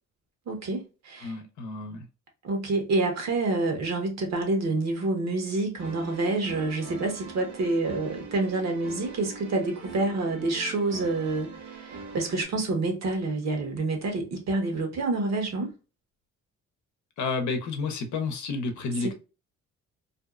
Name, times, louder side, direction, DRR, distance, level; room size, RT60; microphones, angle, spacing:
voice 1, 0.5-1.3 2.4-15.7, right 2 dB, 60° right, 1.1 m, -28 dB
voice 2, 1.2-2.1 17.2-19.1, left 4 dB, 70° left, 0.7 m, -30 dB
sound 1, 5.8-12.4, right 4 dB, 85° right, 1.1 m, -43 dB
2.6 x 2.3 x 2.3 m
cardioid pair, 90°, 30 cm